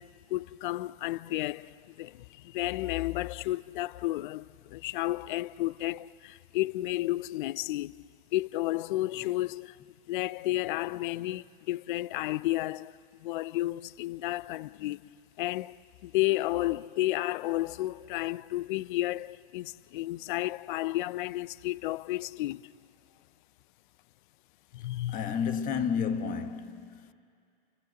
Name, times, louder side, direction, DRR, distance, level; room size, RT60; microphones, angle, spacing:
voice 1, 0.0-9.8 10.1-15.0 15.4-15.8 16.0-22.7 24.7-25.4, left 17 dB, 60° left, 0.4 m, -32 dB
voice 2, 25.1-27.1, left 6 dB, 30° left, 1.3 m, -31 dB
29.5 x 14.0 x 7.5 m
hypercardioid pair, 120°, 29 cm